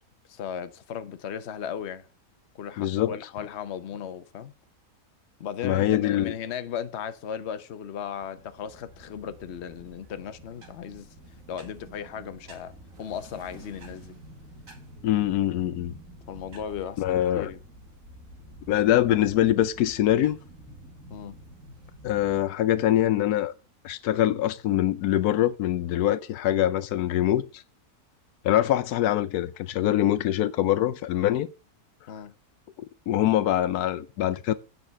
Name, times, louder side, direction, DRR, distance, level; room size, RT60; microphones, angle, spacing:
voice 1, 0.3-2.1 2.5-4.5 5.4-11.1 11.5-14.1 16.3-17.6 21.1-21.4 32.1-32.3, left 8 dB, 50° left, 1.0 m, -36 dB
voice 2, 2.8-3.1 5.6-6.4 15.0-15.9 17.0-17.5 18.7-20.4 22.0-23.5 23.8-27.6 28.4-31.5 33.1-34.5, left 12 dB, 85° left, 1.1 m, -24 dB
sound 1, 8.0-22.4, right 1 dB, 60° right, 2.6 m, -49 dB
8.7 x 5.4 x 6.8 m
omnidirectional pair, 1.6 m